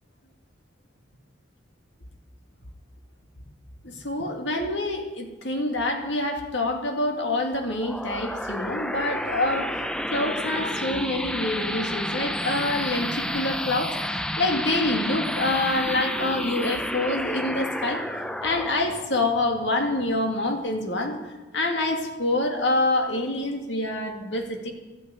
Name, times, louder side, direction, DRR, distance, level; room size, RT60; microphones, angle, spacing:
voice 1, 3.8-9.8 10.1-21.2 21.5-24.7, left 2 dB, 65° left, 3 dB, 2.2 m, -26 dB
sound 1, 7.5-20.6, left 1 dB, 5° left, 0.5 m, -31 dB
13.0 x 10.0 x 8.6 m, 1.2 s
head